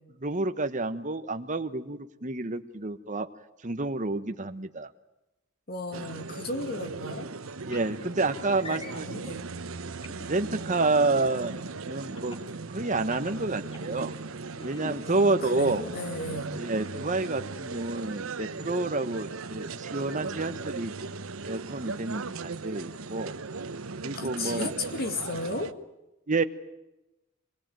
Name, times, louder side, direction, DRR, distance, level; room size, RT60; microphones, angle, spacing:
voice 1, 0.2-3.3 3.6-4.9 7.2-7.4 7.6-9.4 10.2-12.4 12.7-14.1 14.6-15.9 16.6-20.9 21.4-23.4 24.0-24.7 26.3-26.4, right 3 dB, 40° right, 8 dB, 1.2 m, -29 dB
voice 2, 5.7-7.3 8.6-9.4 15.0-16.5 24.1-25.7, left 2 dB, 50° left, 7 dB, 2.5 m, -35 dB
sound 1, 5.9-25.7, right 4 dB, 90° right, 1.0 m, -38 dB
sound 2, 7.7-7.9 8.5-9.2 10.0-10.6 12.1-12.5 13.0-14.1 14.5-15.0, left 1 dB, 25° left, 3.2 m, -43 dB
24.5 x 20.5 x 9.1 m, 0.97 s
head